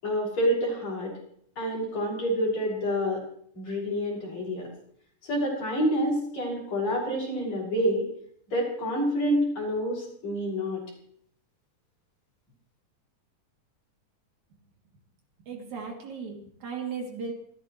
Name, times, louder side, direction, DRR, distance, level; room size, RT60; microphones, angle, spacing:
voice 1, 0.0-1.1 1.6-3.2 3.5-4.7 5.2-8.1 8.5-10.8, equal, 60° left, -3 dB, 7.3 m, -28 dB
voice 2, 15.5-17.3, right 5 dB, 70° right, 0 dB, 4.3 m, -36 dB
28.5 x 13.5 x 3.2 m, 0.65 s
omnidirectional pair, 3.5 m